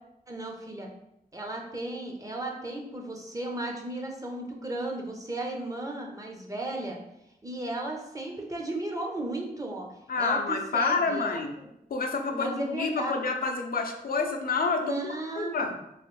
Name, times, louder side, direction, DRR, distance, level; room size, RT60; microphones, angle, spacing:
voice 1, 0.3-0.9 1.3-7.0 7.4-9.9 10.2-11.4 12.3-13.2 14.8-15.7, right 2 dB, 20° right, 0 dB, 0.7 m, -35 dB
voice 2, 10.1-11.5 11.9-15.7, left 4 dB, 70° left, 4 dB, 0.5 m, -28 dB
3.1 x 2.9 x 3.1 m, 0.84 s
wide cardioid pair, 80°, 16 cm